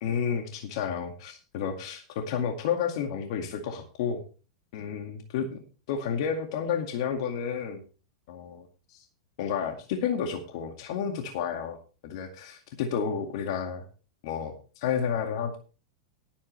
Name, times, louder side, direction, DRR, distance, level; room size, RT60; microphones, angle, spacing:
voice 1, 0.0-4.2 4.7-7.8 8.3-9.1 9.4-11.8 12.0-13.8 14.2-15.6, left 7 dB, 65° left, 4 dB, 2.1 m, -31 dB
18.0 x 8.6 x 3.4 m, 0.36 s
hypercardioid pair, 125°, 3 cm